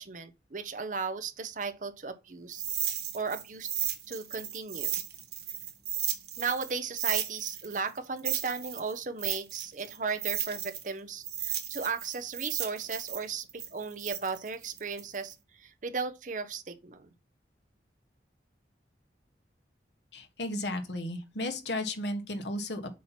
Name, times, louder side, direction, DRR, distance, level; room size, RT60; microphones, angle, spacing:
voice 1, 0.0-2.6 3.1-3.7 4.1-5.0 6.4-17.1, right 5 dB, 45° right, 0.7 m, -36 dB
sound 1, 2.5-6.7 7.0-10.9 11.2-15.3, right 10 dB, 65° right, 1.2 m, -34 dB
voice 2, 20.1-23.0, left 1 dB, 80° left, 1.3 m, -34 dB
7.4 x 2.9 x 5.7 m
head